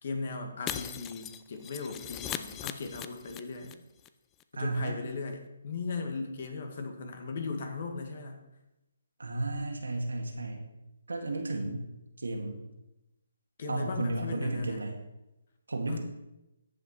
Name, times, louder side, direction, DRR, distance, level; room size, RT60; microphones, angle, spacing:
voice 1, 0.0-3.8 4.5-8.4 13.6-14.8 15.9-16.0, left 4 dB, 50° left, 4 dB, 1.8 m, -38 dB
Shatter, 0.7-3.7 4.0-4.1 4.4-4.5, left 11 dB, 15° left, 0.4 m, -39 dB
voice 2, 4.5-5.0 9.2-10.6 11.1-11.9 12.2-12.6 13.7-14.9 15.7-16.0, right 2 dB, 80° right, 2 dB, 1.9 m, -33 dB
14.0 x 5.7 x 4.3 m, 0.95 s
figure-of-eight pair, 150°, 0 cm